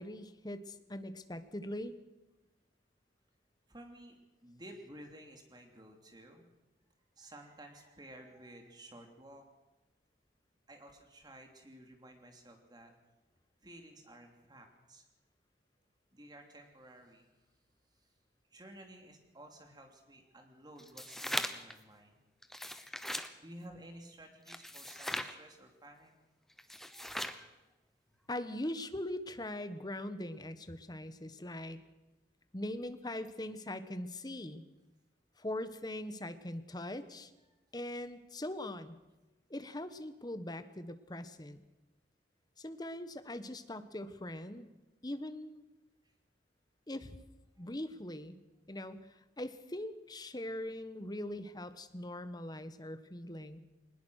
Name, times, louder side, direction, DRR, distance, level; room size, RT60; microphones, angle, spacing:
voice 1, 0.0-2.0 28.3-31.8 32.5-34.6 35.4-37.3 37.7-39.0 39.5-41.6 42.6-44.7 45.0-45.6 46.9-47.2 47.6-48.3 48.7-53.6, left 1 dB, 25° left, 11 dB, 1.2 m, -41 dB
voice 2, 3.7-6.5 7.2-9.4 10.7-12.9 13.6-15.0 16.1-17.3 18.5-22.1 23.4-26.1 27.1-27.2 47.6-47.7, right 1 dB, 25° right, 3 dB, 3.0 m, -54 dB
sound 1, 20.8-21.7 22.4-23.3 24.5-25.3 26.6-27.4, left 1 dB, ahead, 1.0 m, -39 dB
21.0 x 20.0 x 6.4 m, 1.1 s
head